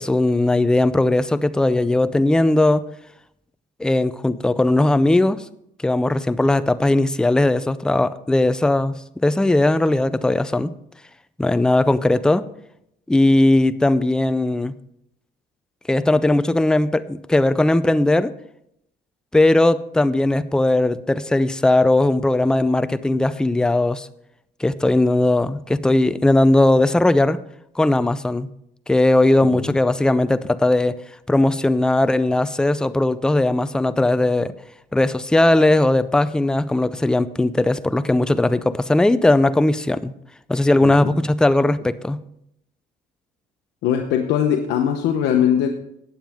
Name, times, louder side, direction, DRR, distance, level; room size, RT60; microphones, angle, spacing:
voice 1, 0.0-2.8 3.8-5.4 5.8-9.0 9.2-10.7 11.4-12.5 13.1-14.7 15.9-18.3 19.3-24.1 24.6-27.4 27.8-28.5 28.9-31.0 31.3-34.5 34.9-40.1 40.5-42.2, left 2 dB, 5° left, 13 dB, 0.4 m, -18 dB
voice 2, 40.8-41.1 43.8-45.7, left 9 dB, 80° left, 4 dB, 0.9 m, -20 dB
15.0 x 9.0 x 3.5 m, 0.77 s
cardioid pair, 110°, 17 cm